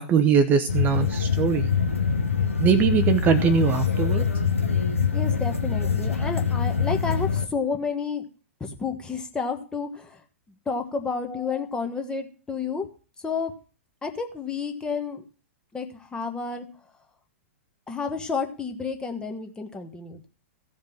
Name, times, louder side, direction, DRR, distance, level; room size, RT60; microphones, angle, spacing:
voice 1, 0.0-1.7 2.6-4.2, right 7 dB, 25° right, 9 dB, 0.8 m, -21 dB
sound 1, 0.7-7.5, left 6 dB, 85° left, 1.4 m, -24 dB
voice 2, 5.1-8.2 8.6-10.2 10.7-12.9 13.2-13.5 14.0-15.2 15.7-16.6 17.9-20.3, left 5 dB, 10° left, 5 dB, 1.5 m, -30 dB
15.5 x 5.2 x 6.0 m, 0.37 s
figure-of-eight pair, 105°, 7 cm